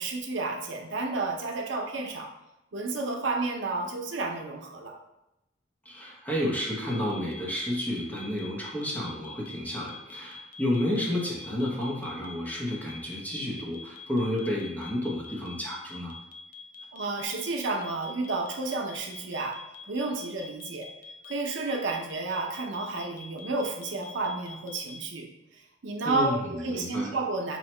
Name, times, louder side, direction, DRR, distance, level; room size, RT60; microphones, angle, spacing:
voice 1, 0.0-2.3 2.7-5.0 16.9-19.6 19.9-20.9 21.2-25.3 25.8-27.6, right 3 dB, 85° right, 2 dB, 0.6 m, -31 dB
voice 2, 5.8-16.1 26.0-27.1, left 1 dB, 10° left, -4 dB, 0.8 m, -31 dB
sound 1, 6.9-25.0, left 4 dB, 45° left, 0.4 m, -45 dB
3.0 x 2.8 x 4.3 m, 0.89 s
head